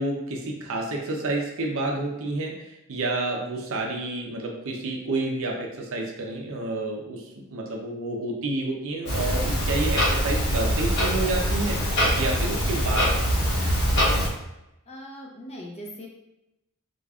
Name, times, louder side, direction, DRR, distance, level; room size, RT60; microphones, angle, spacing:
voice 1, 0.0-11.8 12.2-13.1, right 2 dB, 65° right, 0 dB, 0.7 m, -29 dB
Clock, 9.0-14.3, equal, 50° left, 1.1 m, -23 dB
voice 2, 14.9-16.1, equal, 30° left, -1 dB, 0.6 m, -40 dB
5.0 x 2.4 x 2.4 m, 0.90 s
head